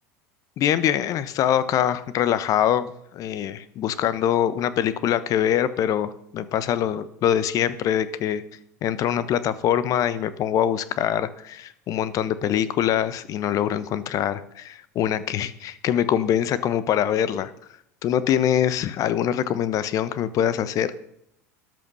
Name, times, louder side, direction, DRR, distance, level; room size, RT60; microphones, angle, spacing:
voice 1, 0.6-8.4 8.8-17.5 18.0-21.0, left 10 dB, 45° left, 15 dB, 1.1 m, -24 dB
13.5 x 11.0 x 5.6 m, 0.75 s
figure-of-eight pair, 75°, 8 cm